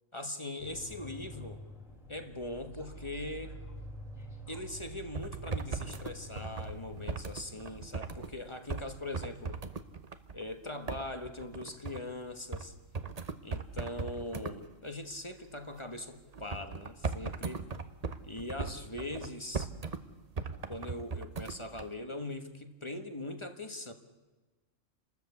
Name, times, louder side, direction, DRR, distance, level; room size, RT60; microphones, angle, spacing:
voice 1, 0.1-1.6 2.1-3.6 4.5-9.6 10.3-12.7 13.4-17.6 18.2-19.7 20.7-23.9, left 1 dB, 25° left, 7 dB, 1.4 m, -41 dB
sound 1, 0.6-8.2, equal, 85° left, 4.9 m, -47 dB
sound 2, 5.1-8.3 8.7-8.9 9.1-10.4 10.9-12.0 12.5-12.7 12.9-14.5 16.3-20.0 20.4-21.9, right 4 dB, 35° right, 0.9 m, -38 dB
30.0 x 13.5 x 8.3 m, 1.2 s
omnidirectional pair, 1.3 m